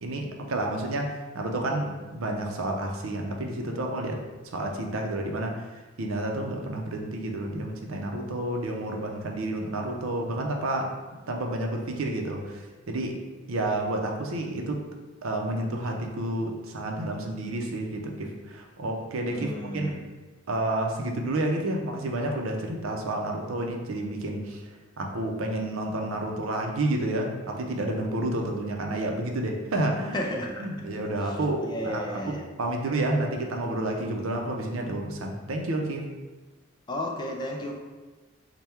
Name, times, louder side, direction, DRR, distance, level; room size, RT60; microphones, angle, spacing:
voice 1, 0.0-4.2 4.5-5.7 6.0-10.9 11.3-13.2 13.5-14.8 15.2-19.9 20.5-24.6 25.0-30.2 30.6-36.1, right 1 dB, 85° right, 2 dB, 0.6 m, -30 dB
voice 2, 19.3-20.0 30.1-30.7 31.2-31.3 31.6-32.4 36.9-37.8, left 1 dB, 20° left, 0 dB, 0.3 m, -33 dB
3.4 x 2.2 x 4.3 m, 1.3 s
head